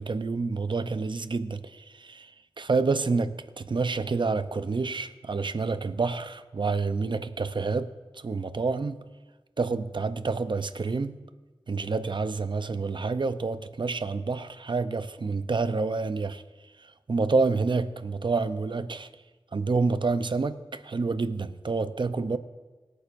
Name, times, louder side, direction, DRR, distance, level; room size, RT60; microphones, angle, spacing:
voice 1, 0.0-2.3 2.6-9.0 9.6-11.2 11.7-16.4 16.8-19.1 19.5-22.4, right 4 dB, 55° right, 11 dB, 0.6 m, -28 dB
24.5 x 9.3 x 2.6 m, 1.3 s
wide cardioid pair, 75°, 10 cm